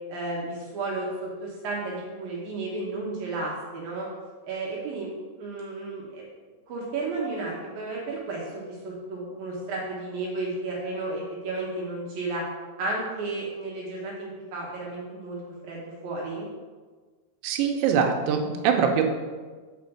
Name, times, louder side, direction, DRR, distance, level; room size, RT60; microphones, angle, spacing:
voice 1, 0.1-4.1 4.5-5.1 5.4-6.2 6.7-12.4 12.8-16.5, right 2 dB, 65° right, -4 dB, 2.6 m, -33 dB
voice 2, 17.4-19.1, right 7 dB, 85° right, 3 dB, 3.1 m, -23 dB
7.0 x 5.2 x 7.0 m, 1.4 s
omnidirectional pair, 5.2 m